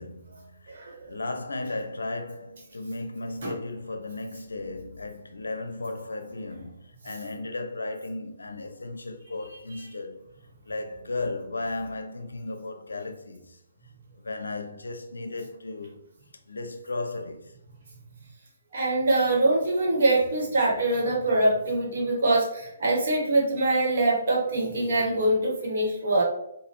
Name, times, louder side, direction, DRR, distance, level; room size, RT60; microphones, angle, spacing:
voice 1, 0.0-0.7 1.1-10.2 10.7-13.6 14.2-16.0 16.5-17.5, left 2 dB, 70° left, 0.5 m, -35 dB
voice 2, 18.7-26.2, right 2 dB, 55° right, 1.3 m, -24 dB
4.9 x 2.2 x 3.0 m
figure-of-eight pair, 130°, 0 cm